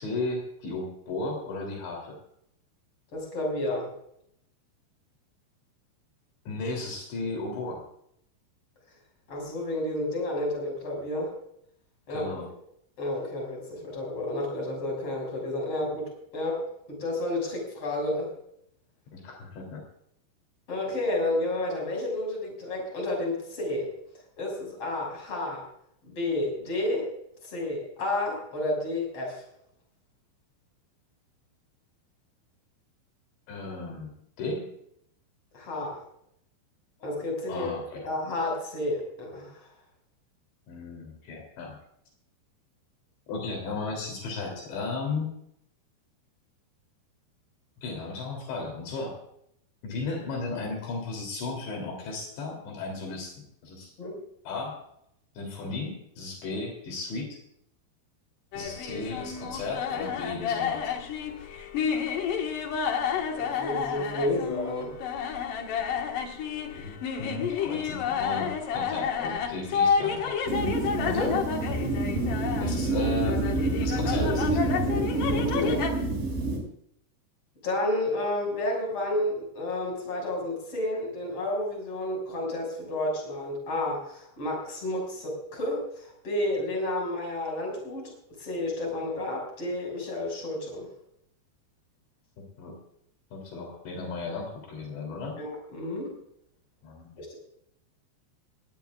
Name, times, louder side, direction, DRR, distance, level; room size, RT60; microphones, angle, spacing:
voice 1, 0.0-2.2 6.5-7.8 12.1-12.5 19.1-19.8 33.5-34.1 34.4-34.8 37.5-38.0 40.7-41.8 43.3-45.3 47.8-49.2 49.8-53.9 54.5-54.8 55.4-57.4 58.6-61.0 66.7-70.4 72.6-74.6 92.6-92.8 93.3-95.4 96.8-97.3, left 3 dB, 75° left, 1 dB, 5.4 m, -35 dB
voice 2, 3.1-3.9 9.3-11.3 12.1-12.3 13.0-18.3 20.7-23.9 24.4-25.7 26.1-27.1 27.4-29.4 35.5-36.0 37.0-37.7 38.0-39.7 54.0-54.2 63.3-64.9 71.1-71.4 75.5-75.9 77.6-88.1 88.4-90.9 95.4-96.1 97.2-97.4, left 1 dB, 30° left, 0 dB, 6.8 m, -31 dB
sound 1, 58.5-75.9, left 7 dB, 60° left, 2.8 m, -30 dB
sound 2, 70.5-76.6, right 2 dB, 60° right, 8.3 m, -27 dB
20.5 x 18.5 x 2.4 m, 0.72 s
omnidirectional pair, 5.2 m